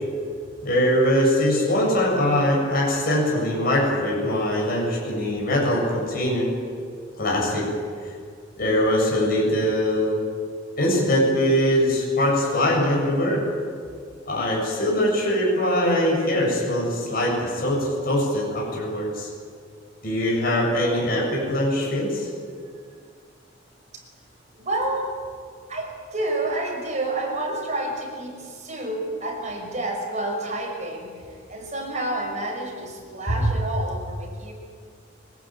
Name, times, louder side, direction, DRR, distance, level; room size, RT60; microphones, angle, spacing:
voice 1, 0.6-6.5 7.2-7.7 8.6-10.2 10.8-13.4 14.3-19.3 20.0-22.3 33.3-33.5, equal, 50° left, -2 dB, 7.7 m, -22 dB
voice 2, 24.5-25.2 25.7-31.2 31.5-34.5, right 2 dB, 40° right, 1 dB, 6.0 m, -29 dB
24.5 x 19.5 x 9.1 m, 2.1 s
head